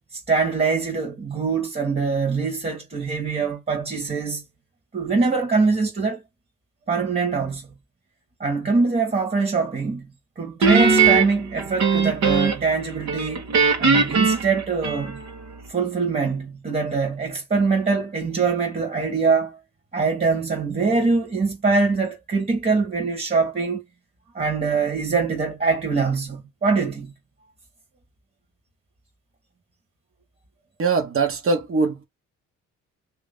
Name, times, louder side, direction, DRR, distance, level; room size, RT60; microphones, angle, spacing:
voice 1, 0.1-4.4 4.9-6.2 6.9-7.7 8.4-10.1 10.4-13.5 13.8-15.2 15.7-19.6 19.9-23.8 24.3-27.1, right 4 dB, 30° right, 1.7 m, -23 dB
Guitar, 10.6-12.8 13.1-15.4, right 5 dB, 65° right, 1.5 m, -19 dB
voice 2, 30.8-32.1, right 4 dB, 45° right, 1.4 m, -22 dB
3.1 x 3.1 x 3.7 m
cardioid pair, 90°, 30 cm